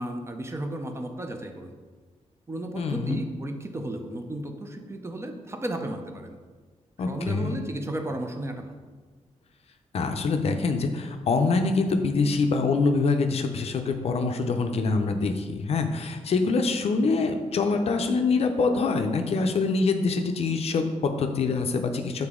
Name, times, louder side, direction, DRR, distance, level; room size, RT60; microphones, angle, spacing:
voice 1, 0.0-1.7 2.5-6.4 7.1-8.7, right 1 dB, 20° right, 5 dB, 0.5 m, -34 dB
voice 2, 2.8-3.2 7.0-7.6 9.9-22.3, left 4 dB, 55° left, 6 dB, 0.5 m, -25 dB
6.9 x 3.9 x 3.6 m, 1.4 s
wide cardioid pair, 165°, 12 cm